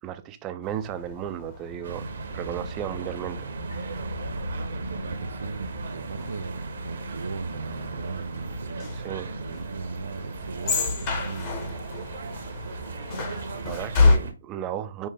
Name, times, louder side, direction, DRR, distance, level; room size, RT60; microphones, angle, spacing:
voice 1, 0.0-2.1 2.3-3.5 9.0-9.3 13.7-15.1, right 10 dB, 20° right, 0.5 m, -34 dB
sound 1, 0.6-14.2, left 3 dB, 25° left, 1.0 m, -31 dB
sound 2, 1.8-14.3, right 3 dB, 60° right, 1.0 m, -36 dB
voice 2, 4.4-11.8, right 4 dB, 75° right, 0.3 m, -38 dB
5.4 x 2.1 x 3.4 m
hypercardioid pair, 150°, 0 cm